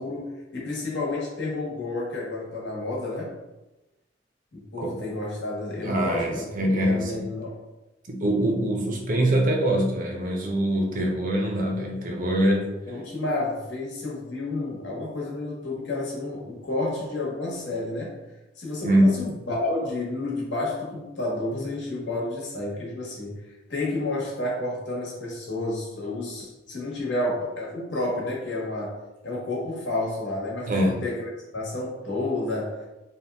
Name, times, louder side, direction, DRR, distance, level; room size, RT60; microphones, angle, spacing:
voice 1, 0.0-3.4 4.5-7.6 12.8-18.2 18.6-29.0 29.2-32.9, left 2 dB, 75° left, -4 dB, 1.0 m, -30 dB
voice 2, 4.8-5.1 5.8-7.3 8.1-12.7 18.8-19.3 30.7-31.0, right 1 dB, 50° right, 0 dB, 0.6 m, -24 dB
2.8 x 2.2 x 3.3 m, 1.0 s
head